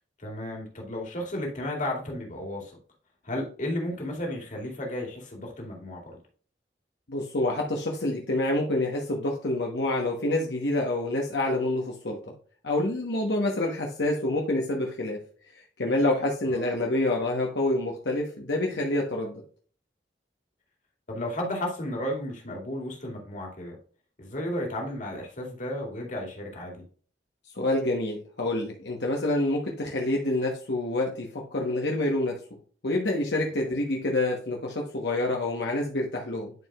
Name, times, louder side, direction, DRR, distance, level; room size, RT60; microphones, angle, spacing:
voice 1, 0.2-2.8 3.2-6.0 16.5-16.7 21.1-23.8 24.2-26.8, left 1 dB, 45° left, 0 dB, 2.2 m, -33 dB
voice 2, 7.1-12.2 12.6-15.2 15.8-19.4 27.5-32.3 32.8-36.5, left 2 dB, 75° left, -1 dB, 1.1 m, -27 dB
10.5 x 4.7 x 2.4 m, 0.43 s
head